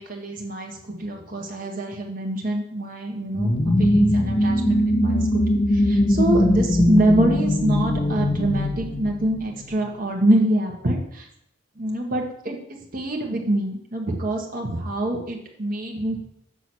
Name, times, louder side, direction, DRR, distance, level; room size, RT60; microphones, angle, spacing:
voice 1, 0.0-11.3 11.8-16.2, right 1 dB, 45° right, 1 dB, 1.5 m, -25 dB
sound 1, 3.3-9.8, left 1 dB, 25° left, 0.6 m, -21 dB
7.1 x 6.1 x 6.2 m, 0.73 s
head